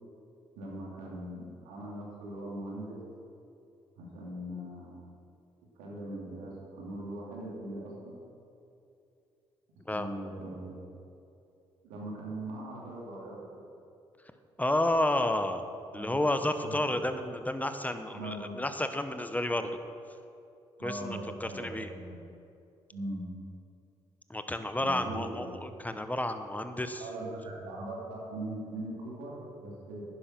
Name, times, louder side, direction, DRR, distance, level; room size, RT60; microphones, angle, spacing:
voice 1, 0.6-3.0 4.0-4.9 5.8-8.2 9.9-10.8 11.8-13.4 15.9-16.2 16.6-17.0 18.1-18.6 20.8-22.2 22.9-23.2 24.8-25.5 27.0-30.0, right 1 dB, 85° right, -4 dB, 2.8 m, -40 dB
voice 2, 14.6-15.6 15.9-19.8 20.8-21.9 24.3-27.0, left 1 dB, 10° left, 9 dB, 1.1 m, -31 dB
11.0 x 10.0 x 6.0 m, 2.6 s
hypercardioid pair, 45°, 13 cm